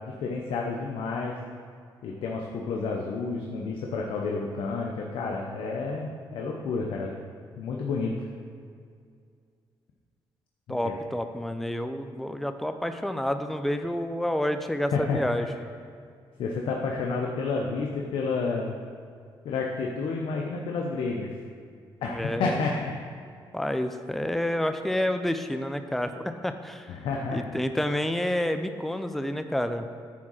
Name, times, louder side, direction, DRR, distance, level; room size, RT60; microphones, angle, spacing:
voice 1, 0.1-1.3 2.0-7.1 7.6-8.1 10.7-10.9 14.9-15.2 16.4-18.8 19.4-21.3 22.0-22.9 26.9-27.6, left 4 dB, 75° left, -1 dB, 0.8 m, -30 dB
voice 2, 10.7-15.5 22.1-22.6 23.5-26.9 27.3-29.9, left 1 dB, ahead, 8 dB, 0.5 m, -29 dB
9.5 x 3.7 x 6.3 m, 2.3 s
cardioid pair, 85°, 9 cm